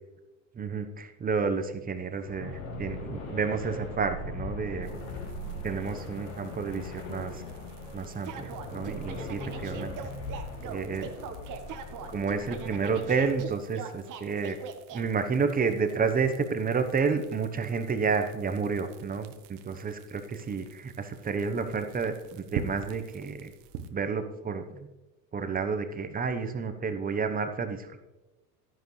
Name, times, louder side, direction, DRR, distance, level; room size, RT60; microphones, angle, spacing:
voice 1, 0.5-4.9 5.6-7.4 7.9-9.9 10.6-11.1 12.1-14.6 14.9-23.5 23.9-24.9 25.3-28.0, right 5 dB, 20° right, 8 dB, 1.0 m, -30 dB
sound 1, 2.1-13.4, left 2 dB, 70° left, 3.3 m, -40 dB
sound 2, 4.8-23.9, right 8 dB, 70° right, 1.3 m, -47 dB
sound 3, 8.3-15.0, right 7 dB, 40° right, 1.3 m, -41 dB
11.5 x 10.5 x 3.2 m, 1.1 s
supercardioid pair, 120°, 48 cm